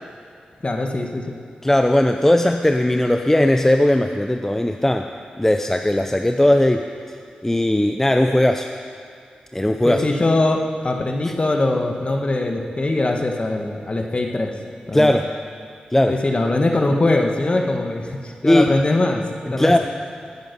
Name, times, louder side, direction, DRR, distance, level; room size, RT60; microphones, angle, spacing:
voice 1, 0.6-1.4 9.9-14.5 14.9-15.2 16.1-19.2 19.5-19.8, left 2 dB, 40° left, 2 dB, 1.8 m, -21 dB
voice 2, 1.6-5.1 5.4-6.9 7.4-8.7 9.5-10.0 11.2-11.3 14.9-15.2 15.9-16.1 18.4-18.7 19.6-19.8, left 1 dB, 10° left, 5 dB, 0.7 m, -17 dB
19.5 x 9.0 x 5.5 m, 2.4 s
cardioid pair, 50°, 3 cm